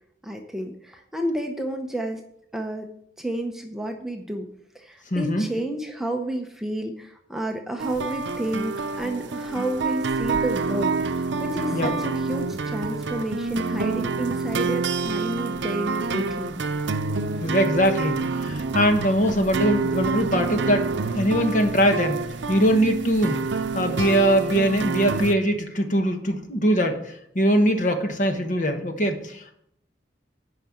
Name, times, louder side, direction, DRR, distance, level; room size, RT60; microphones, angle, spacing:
voice 1, 0.2-2.2 2.5-2.9 3.2-4.5 4.7-16.6, right 1 dB, ahead, 3 dB, 0.7 m, -30 dB
voice 2, 5.1-5.5 11.7-11.9 17.4-23.4 23.7-27.0 27.3-29.5, equal, 45° left, 5 dB, 1.3 m, -22 dB
sound 1, 7.8-25.3, right 4 dB, 75° right, 0.6 m, -27 dB
9.2 x 5.5 x 7.6 m, 0.73 s
head